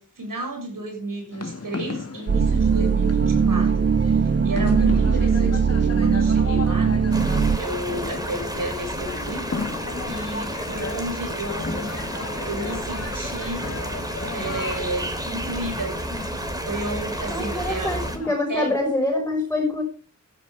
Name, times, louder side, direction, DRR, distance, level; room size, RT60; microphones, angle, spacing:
voice 1, 0.0-3.9 4.4-7.0 7.5-9.7 10.1-11.9 12.4-13.6 14.3-16.0 16.6-17.9 18.5-18.7, right 1 dB, 85° right, 4 dB, 6.9 m, -32 dB
sound 1, 1.3-18.3, left 3 dB, 50° left, 2.1 m, -35 dB
sound 2, 2.3-7.6, right 6 dB, 35° right, 0.5 m, -20 dB
sound 3, 7.1-18.2, right 1 dB, 10° right, 3.4 m, -31 dB
voice 2, 17.3-19.8, left 2 dB, 5° left, 1 dB, 5.4 m, -25 dB
15.5 x 13.0 x 3.5 m, 0.36 s
wide cardioid pair, 80°, 32 cm